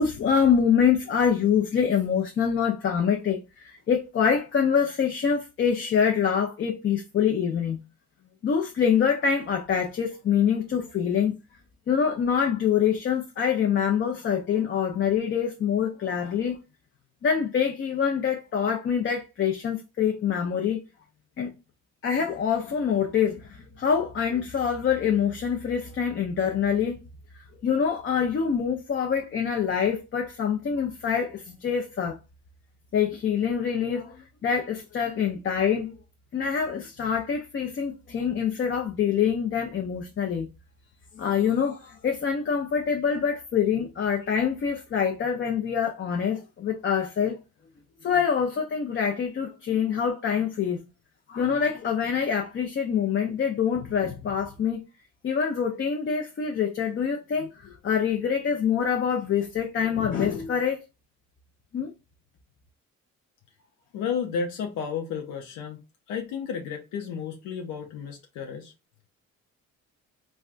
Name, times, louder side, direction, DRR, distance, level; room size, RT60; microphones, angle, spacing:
voice 1, 0.0-7.8 8.4-11.4 11.9-16.6 17.2-20.8 21.4-21.5 22.0-27.0 27.6-32.2 32.9-35.9 36.3-40.5 41.1-47.4 48.0-50.9 51.3-54.9 55.2-60.8 61.7-61.9, left 7 dB, 40° left, 0.5 m, -25 dB
voice 2, 63.9-65.8 66.1-68.7, left 6 dB, 90° left, 0.6 m, -32 dB
3.3 x 2.2 x 2.5 m
cardioid pair, 90°, 30 cm